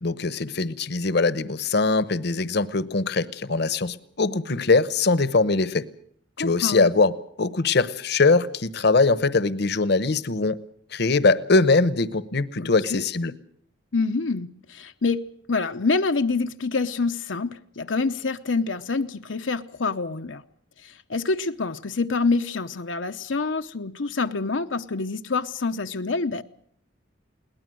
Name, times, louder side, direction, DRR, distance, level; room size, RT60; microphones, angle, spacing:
voice 1, 0.0-5.9 6.4-7.1 7.4-10.6 10.9-13.3, left 3 dB, 60° left, 15 dB, 1.0 m, -22 dB
voice 2, 6.4-6.9 12.6-13.0 13.9-15.2 15.5-20.4 20.8-26.4, left 4 dB, 85° left, 6 dB, 0.8 m, -26 dB
22.0 x 18.5 x 7.7 m, 0.63 s
head